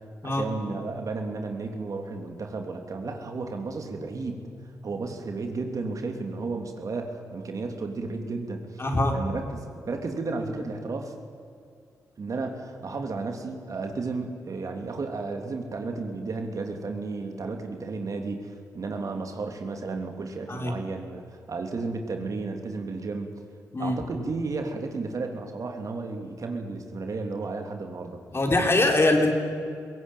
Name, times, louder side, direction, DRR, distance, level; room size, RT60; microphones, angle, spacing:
voice 1, 0.2-4.4 4.8-8.8 9.1-11.1 12.2-23.3 23.8-28.2, right 3 dB, 55° right, 4 dB, 2.9 m, -33 dB
voice 2, 8.8-9.2 20.5-20.7 23.7-24.0 28.3-29.3, left 2 dB, 35° left, 3 dB, 4.1 m, -23 dB
21.5 x 17.0 x 9.2 m, 2.3 s
supercardioid pair, 50°, 7 cm